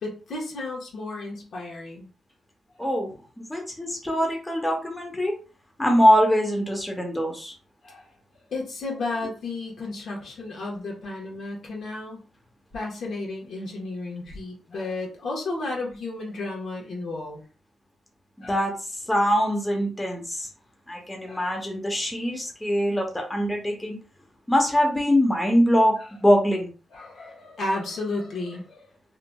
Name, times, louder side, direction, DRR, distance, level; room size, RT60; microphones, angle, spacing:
voice 1, 0.0-2.1 7.8-8.1 8.5-12.2 12.7-17.4 18.4-18.6 21.2-21.5 26.9-28.9, left 2 dB, 70° left, -2 dB, 1.2 m, -33 dB
voice 2, 2.8-5.3 5.8-7.5 18.4-18.7 19.1-20.5 20.9-24.0 24.5-26.0 26.2-26.7, equal, 10° left, 1 dB, 0.9 m, -23 dB
2.8 x 2.6 x 2.3 m, 0.36 s
cardioid pair, 75°, 0 cm